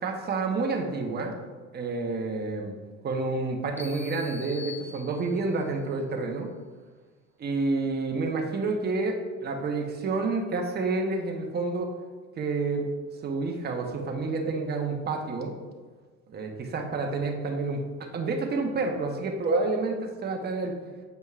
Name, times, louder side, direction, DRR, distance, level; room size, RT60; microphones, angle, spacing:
voice 1, 0.0-1.4 1.7-2.7 3.0-6.5 7.4-11.9 12.4-12.9 13.2-15.5 16.3-20.7, right 3 dB, 35° right, 2 dB, 0.9 m, -29 dB
sound 1, 3.8-5.6, left 4 dB, 5° left, 0.7 m, -44 dB
7.8 x 5.1 x 2.4 m, 1.4 s
cardioid pair, 100°, 29 cm